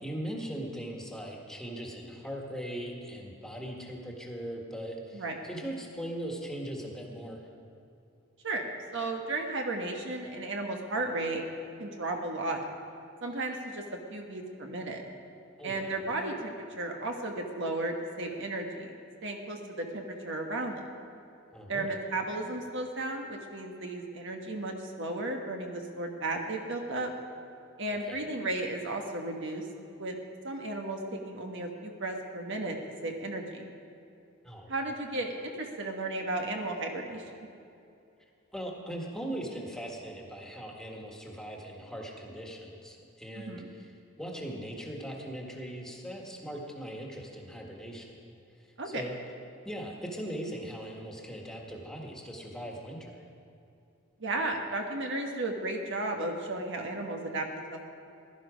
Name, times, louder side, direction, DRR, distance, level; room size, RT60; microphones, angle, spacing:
voice 1, 0.0-7.4 15.6-16.0 21.5-21.9 28.0-28.3 34.4-34.7 38.5-48.1 48.8-49.1 49.6-53.2, equal, 5° left, -1 dB, 1.7 m, -40 dB
voice 2, 8.9-11.4 11.8-12.6 13.2-13.8 14.1-15.0 15.6-18.9 19.2-20.8 21.7-27.1 27.8-29.6 30.0-30.2 30.4-32.8 33.0-33.7 34.7-37.2 43.3-43.7 48.8-49.1 54.2-57.9, right 2 dB, 65° right, 2 dB, 1.4 m, -34 dB
16.5 x 12.0 x 5.1 m, 2.7 s
head